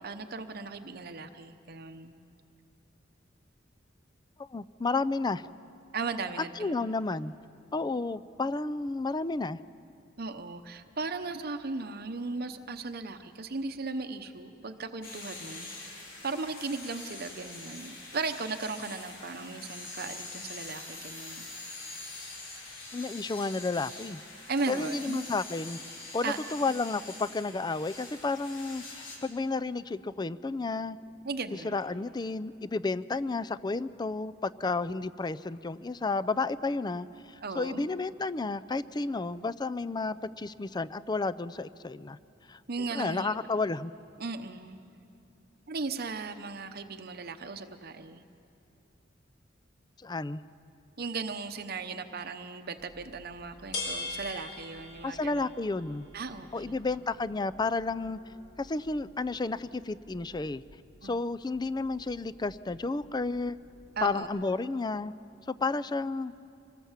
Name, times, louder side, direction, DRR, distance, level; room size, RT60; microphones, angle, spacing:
voice 1, 0.0-2.2 5.9-6.8 10.2-15.7 16.0-21.5 24.5-25.3 26.2-26.5 31.2-31.7 37.4-37.9 42.7-43.4 44.2-44.8 45.7-48.3 51.0-55.4 56.1-56.8 61.0-61.1 64.0-64.3, right 4 dB, 55° right, 7 dB, 0.8 m, -37 dB
voice 2, 4.5-5.4 6.6-7.3 7.7-9.6 22.9-24.2 24.7-25.8 26.1-31.0 31.6-42.2 42.5-42.6 42.9-43.9 50.0-50.4 55.0-56.1 56.5-58.2 58.6-60.6 61.0-63.6 64.0-65.1 65.5-66.3, left 3 dB, 20° left, 15 dB, 0.4 m, -32 dB
sound 1, 15.0-29.2, left 2 dB, 90° left, 4.6 m, -44 dB
sound 2, 52.8-64.2, left 3 dB, 70° left, 4.4 m, -45 dB
25.5 x 19.5 x 7.4 m, 2.7 s
head